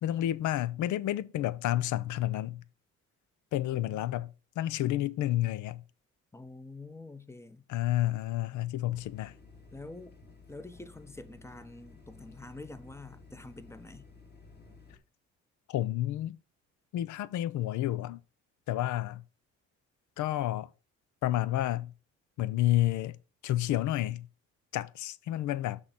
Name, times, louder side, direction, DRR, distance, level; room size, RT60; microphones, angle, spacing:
voice 1, 0.0-2.6 3.5-4.3 4.6-5.8 7.7-9.3 15.7-16.4 16.9-18.2 18.7-19.2 20.2-20.7 21.2-21.9 22.4-23.2 23.4-24.3 24.7-25.8, left 14 dB, 75° left, 0.6 m, -30 dB
voice 2, 6.3-7.6 9.7-10.1 10.5-14.1, left 2 dB, 10° left, 0.7 m, -47 dB
sound 1, 8.9-15.0, left 4 dB, 35° left, 2.3 m, -54 dB
6.2 x 3.9 x 5.9 m
cardioid pair, 90°, 30 cm